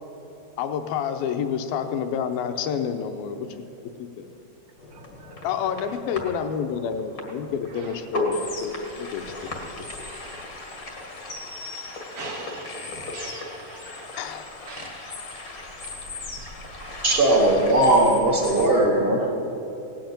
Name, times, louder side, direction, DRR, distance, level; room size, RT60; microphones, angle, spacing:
voice 1, 0.6-3.5 4.0-4.3 5.4-8.4 8.6-9.3 9.6-9.7 14.2-14.4, left 7 dB, 80° left, 8 dB, 2.3 m, -29 dB
sound 1, 4.8-18.7, left 2 dB, 60° left, 0.9 m, -36 dB
voice 2, 4.9-5.5 7.7-8.0 10.1-10.4 12.2-14.1 14.7-15.1 15.4-15.5 16.8-17.0 17.9-18.0 18.5-19.4, right 4 dB, 85° right, 2 dB, 1.8 m, -42 dB
voice 3, 17.0-19.2, right 1 dB, 55° right, -1 dB, 0.6 m, -18 dB
17.0 x 7.9 x 8.8 m, 3.0 s
omnidirectional pair, 4.6 m